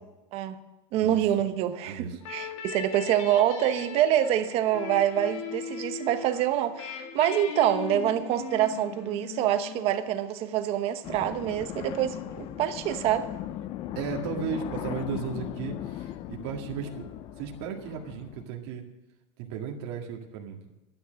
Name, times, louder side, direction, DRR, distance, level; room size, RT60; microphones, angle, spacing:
voice 1, 0.9-13.3, right 11 dB, 40° right, 1.1 m, -26 dB
voice 2, 1.8-2.2 14.0-17.1 17.4-18.8 19.4-20.6, right 6 dB, 60° right, 1.9 m, -35 dB
sound 1, 2.2-10.7, left 8 dB, 90° left, 2.0 m, -39 dB
sound 2, 11.0-18.5, left 12 dB, 35° left, 0.5 m, -38 dB
11.5 x 9.7 x 6.4 m
supercardioid pair, 155°, 15 cm